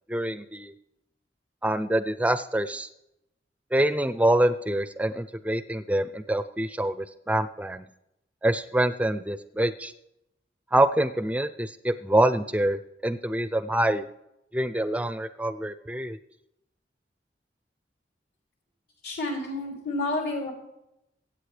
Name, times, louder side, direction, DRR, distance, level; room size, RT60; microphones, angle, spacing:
voice 1, 0.1-0.7 1.6-2.9 3.7-7.8 8.4-9.9 10.7-14.1 14.5-16.2, right 1 dB, 10° right, 12 dB, 0.4 m, -25 dB
voice 2, 19.0-20.5, left 2 dB, 70° left, -1 dB, 3.1 m, -30 dB
23.5 x 8.6 x 3.3 m, 0.85 s
head